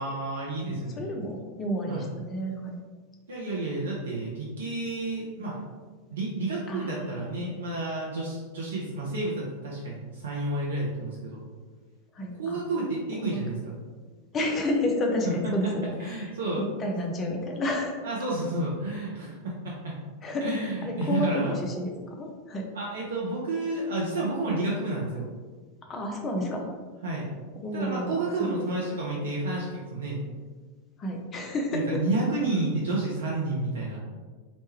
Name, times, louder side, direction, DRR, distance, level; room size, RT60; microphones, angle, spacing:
voice 1, 0.0-1.2 1.9-2.1 3.3-5.6 6.1-11.4 12.4-13.7 15.6-15.7 16.0-16.6 18.0-20.0 20.4-21.6 22.7-25.2 27.0-27.3 27.7-30.2 31.7-34.0, right 2 dB, 65° right, -5 dB, 0.5 m, -30 dB
voice 2, 0.6-2.8 6.7-7.2 12.1-12.6 13.2-13.4 14.3-18.0 20.2-20.5 20.8-22.7 25.9-26.6 27.6-28.1 31.0-31.8, left 1 dB, 25° left, 2 dB, 0.4 m, -30 dB
3.0 x 2.1 x 3.0 m, 1.4 s
figure-of-eight pair, 90°, 0 cm